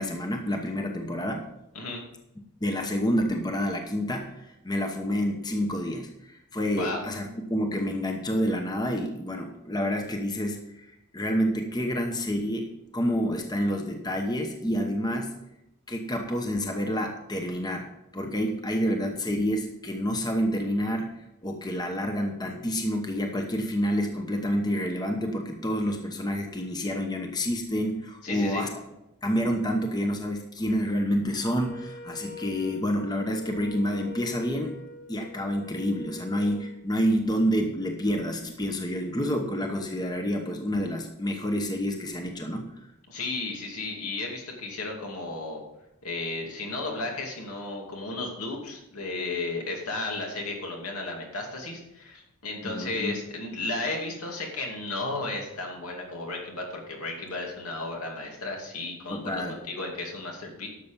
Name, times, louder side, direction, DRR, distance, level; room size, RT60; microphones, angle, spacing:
voice 1, 0.0-1.5 2.6-10.9 11.1-15.3 15.9-17.9 18.1-21.1 21.4-28.8 29.2-34.8 35.1-42.7 52.6-53.1 59.1-59.6, equal, 20° left, 4 dB, 0.9 m, -28 dB
voice 2, 28.2-28.6 43.1-45.6 46.0-60.7, left 2 dB, 80° left, 0 dB, 2.6 m, -34 dB
Wind instrument woodwind instrument, 31.5-36.8, left 5 dB, 45° left, 1.1 m, -43 dB
11.5 x 7.0 x 5.3 m, 0.88 s
head